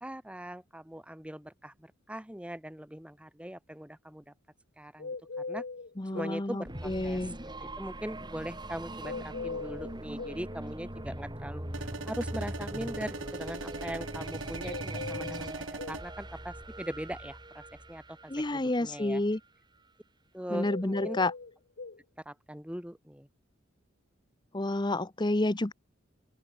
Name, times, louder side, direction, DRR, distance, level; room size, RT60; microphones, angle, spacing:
voice 1, 0.0-4.3 4.8-5.2 5.5-5.6 6.1-7.2 7.6-19.2 20.3-21.2 22.2-23.3, equal, 5° right, 1.3 m, -41 dB
sound 1, 5.0-6.4 9.0-10.4 14.6-16.0 20.6-22.0, left 4 dB, 55° left, 0.8 m, -39 dB
voice 2, 6.0-7.3 18.3-19.4 20.5-21.3 24.5-25.7, left 2 dB, 20° left, 0.9 m, -30 dB
sound 2, 6.6-19.4, right 1 dB, 20° right, 3.3 m, -41 dB
sound 3, 11.7-16.0, right 3 dB, 70° right, 3.4 m, -40 dB
open air
head